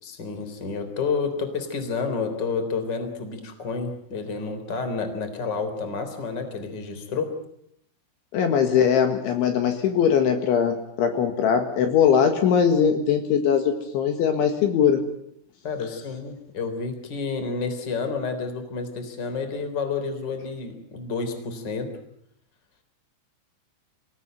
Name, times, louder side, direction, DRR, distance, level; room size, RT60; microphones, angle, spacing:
voice 1, 0.0-7.3 15.6-21.9, left 4 dB, 25° left, 7 dB, 3.4 m, -30 dB
voice 2, 8.3-15.0, left 7 dB, 70° left, 6 dB, 4.0 m, -21 dB
27.0 x 17.0 x 9.2 m, 0.73 s
omnidirectional pair, 6.0 m